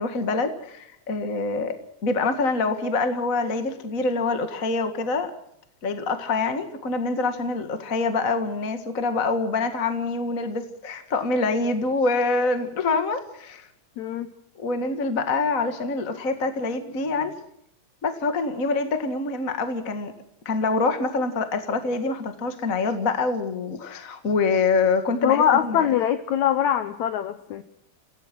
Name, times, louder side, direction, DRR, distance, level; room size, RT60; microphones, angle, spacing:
voice 1, 0.0-1.7 2.0-5.3 5.8-13.7 14.6-17.3 18.0-20.1 20.4-25.9, left 3 dB, 30° left, 7 dB, 1.7 m, -25 dB
voice 2, 14.0-14.3 25.2-27.6, left 10 dB, 70° left, 10 dB, 2.1 m, -22 dB
29.5 x 16.5 x 6.2 m, 0.73 s
omnidirectional pair, 3.8 m